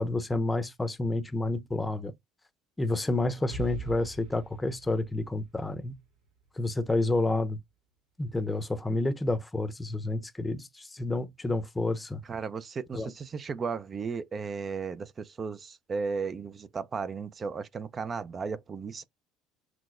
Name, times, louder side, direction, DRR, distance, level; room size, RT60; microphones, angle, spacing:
voice 1, 0.0-2.1 2.8-5.9 6.6-7.6 8.2-12.2 12.9-13.1, left 2 dB, 15° left, 0.7 m, -29 dB
Explosion, 3.5-7.3, right 7 dB, 80° right, 1.3 m, -43 dB
voice 2, 12.3-19.0, right 5 dB, 35° right, 0.5 m, -35 dB
5.9 x 2.2 x 2.4 m
supercardioid pair, 95°, 0 cm